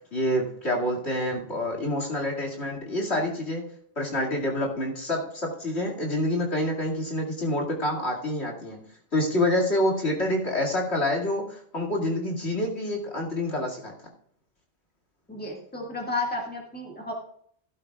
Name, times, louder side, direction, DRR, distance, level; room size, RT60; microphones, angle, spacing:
voice 1, 0.1-3.6 4.0-8.8 9.1-13.9, left 1 dB, 65° left, 0 dB, 2.6 m, -27 dB
voice 2, 15.3-17.1, left 2 dB, 10° left, -1 dB, 1.9 m, -32 dB
14.5 x 12.5 x 2.4 m, 0.63 s
omnidirectional pair, 1.2 m